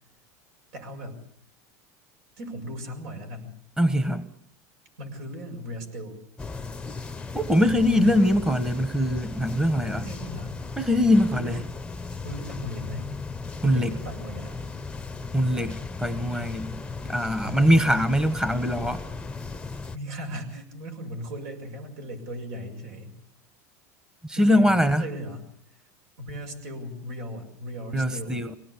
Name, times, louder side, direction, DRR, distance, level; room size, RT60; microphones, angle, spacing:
voice 1, 0.7-1.2 2.4-3.6 5.0-6.2 6.6-6.8 7.9-8.2 9.5-10.6 11.3-11.6 12.1-13.1 13.6-14.6 16.7-16.8 17.4-17.8 19.9-23.2 24.4-25.9 26.2-28.4, equal, 70° right, 4 dB, 6.9 m, -37 dB
voice 2, 3.8-4.3 7.3-10.0 10.8-11.6 13.6-13.9 15.3-16.8 17.1-19.0 24.2-25.0 27.9-28.5, equal, 10° right, 11 dB, 1.4 m, -22 dB
sound 1, 6.4-20.0, left 4 dB, 10° left, 0.9 m, -36 dB
24.0 x 18.5 x 8.4 m, 0.66 s
supercardioid pair, 115°, 9 cm